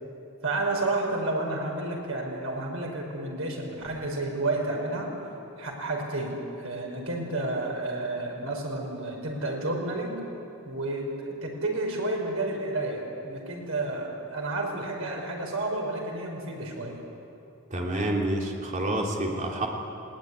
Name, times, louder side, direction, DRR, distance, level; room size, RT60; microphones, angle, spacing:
voice 1, 0.4-5.1 5.6-10.2 10.7-17.0, right 2 dB, 90° right, 0 dB, 5.3 m, -31 dB
voice 2, 17.7-19.7, right 1 dB, 35° right, -1 dB, 3.1 m, -28 dB
20.5 x 18.0 x 10.0 m, 2.8 s
head